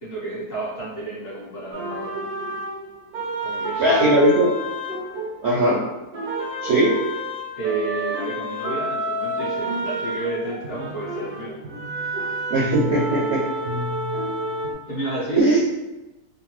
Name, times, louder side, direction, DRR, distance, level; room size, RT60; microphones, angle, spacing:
voice 1, 0.0-2.2 3.4-4.2 5.4-5.6 7.6-11.5 14.8-15.4, right 2 dB, 45° left, -8 dB, 0.9 m, -31 dB
sound 1, 1.7-5.8 6.1-14.7, right 1 dB, 80° right, 1.2 m, -29 dB
voice 2, 3.8-4.5 5.4-5.8 6.6-6.9 12.5-13.4 15.3-15.6, right 1 dB, 60° right, -6 dB, 0.7 m, -18 dB
2.8 x 2.1 x 3.0 m, 1.0 s
omnidirectional pair, 1.7 m